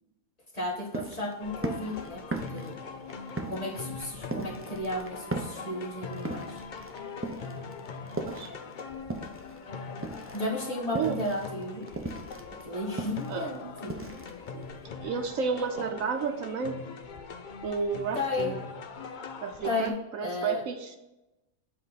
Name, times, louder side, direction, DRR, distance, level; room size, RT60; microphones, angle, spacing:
voice 1, 0.5-2.7 3.5-6.6 10.3-11.8 12.6-14.0 18.1-18.5 19.6-20.6, left 2 dB, 25° left, -3 dB, 1.6 m, -34 dB
sound 1, 0.6-9.6 9.9-14.9, right 2 dB, 20° right, 0.3 m, -38 dB
sound 2, 1.4-19.9, left 5 dB, 50° left, 0.6 m, -42 dB
voice 2, 15.0-16.8 17.6-18.5 19.4-21.0, right 5 dB, 70° right, 5 dB, 1.1 m, -31 dB
7.7 x 4.5 x 4.0 m, 0.97 s
omnidirectional pair, 1.5 m